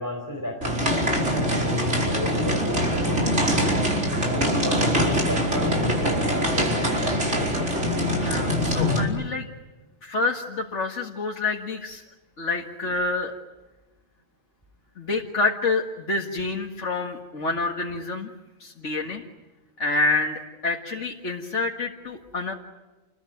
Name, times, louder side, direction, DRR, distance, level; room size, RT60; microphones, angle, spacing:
voice 1, 0.0-3.8 4.3-5.9 6.3-7.5, left 1 dB, 15° left, 0 dB, 4.9 m, -34 dB
sound 1, 0.6-9.0, equal, 60° right, 5.4 m, -23 dB
voice 2, 8.2-9.5 10.0-12.0 12.4-13.3 15.0-18.3 18.6-19.2 19.8-22.5, left 3 dB, 65° left, 0 dB, 2.2 m, -27 dB
29.0 x 21.5 x 9.4 m, 1.2 s
omnidirectional pair, 1.3 m